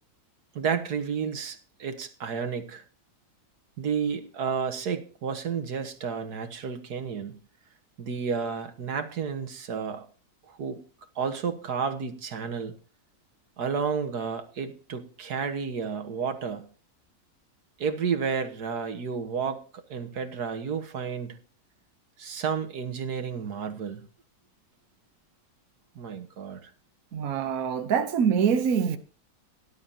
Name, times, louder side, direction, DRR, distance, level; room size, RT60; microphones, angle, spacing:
voice 1, 0.6-2.8 3.8-7.4 8.0-10.1 10.5-10.8 11.2-12.7 13.6-16.7 17.8-21.4 22.2-24.1 26.0-26.7, right 6 dB, 90° right, 1.9 m, -31 dB
voice 2, 27.1-29.0, right 7 dB, 65° right, 1.4 m, -24 dB
19.0 x 11.5 x 2.8 m
omnidirectional pair, 1.6 m